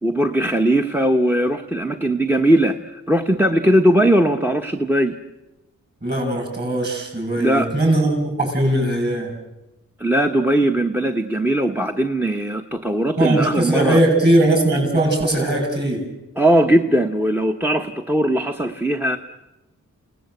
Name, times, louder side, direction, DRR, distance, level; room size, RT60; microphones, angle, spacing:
voice 1, 0.0-2.8 3.1-5.1 7.4-7.7 10.0-14.0 16.4-19.2, right 1 dB, 5° right, 5 dB, 1.1 m, -19 dB
voice 2, 6.0-9.3 13.2-16.0, right 1 dB, 30° right, 2 dB, 7.9 m, -19 dB
30.0 x 18.0 x 8.0 m, 0.99 s
wide cardioid pair, 95°, 33 cm